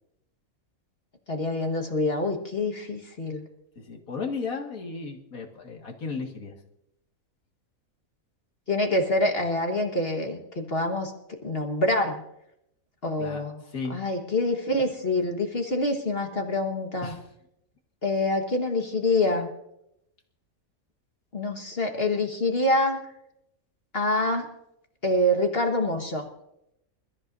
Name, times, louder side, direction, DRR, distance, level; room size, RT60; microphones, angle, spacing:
voice 1, 1.3-3.4 8.7-11.1 11.4-12.2 13.0-13.6 13.9-17.1 18.0-19.5 21.3-23.0 23.9-24.5 25.0-26.2, left 1 dB, 45° left, 3 dB, 1.7 m, -26 dB
voice 2, 3.8-6.5 13.2-13.4 13.7-14.0 17.0-17.2, left 4 dB, 75° left, 2 dB, 2.3 m, -34 dB
28.0 x 14.0 x 2.7 m, 0.80 s
omnidirectional pair, 1.5 m